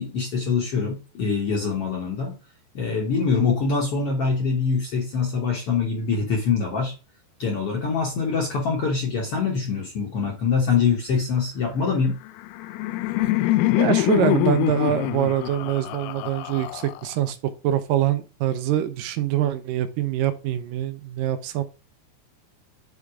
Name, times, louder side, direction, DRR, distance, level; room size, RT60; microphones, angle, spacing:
voice 1, 0.0-2.4 2.7-6.9 7.4-12.2, left 5 dB, 60° left, 0 dB, 1.5 m, -24 dB
Laughter, 12.3-17.3, left 17 dB, 85° left, 1.8 m, -24 dB
voice 2, 13.8-21.6, right 11 dB, 80° right, 11 dB, 2.2 m, -24 dB
8.0 x 3.7 x 4.7 m, 0.33 s
omnidirectional pair, 4.1 m